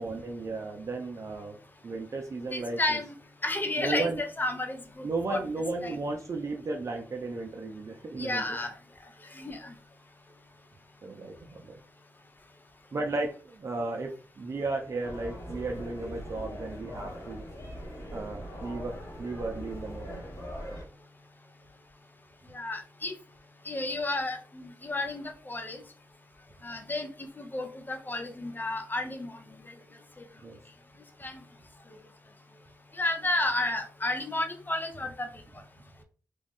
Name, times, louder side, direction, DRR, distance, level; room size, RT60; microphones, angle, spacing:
voice 1, 0.0-1.6 1.8-3.0 3.8-4.2 5.0-8.4 11.0-11.7 12.9-17.4 18.1-20.3 30.4-30.6, right 3 dB, 50° right, 2 dB, 0.5 m, -34 dB
voice 2, 2.5-3.1 3.4-5.4 5.8-5.9 8.2-8.7 9.3-9.7 22.5-23.1 23.6-25.8 26.6-27.1 27.4-29.4 31.2-31.4 33.0-35.3, left 2 dB, 30° left, 6 dB, 0.7 m, -32 dB
sound 1, 15.0-20.8, equal, 55° left, 1.3 m, -41 dB
3.1 x 2.3 x 3.5 m, 0.38 s
cardioid pair, 50°, 6 cm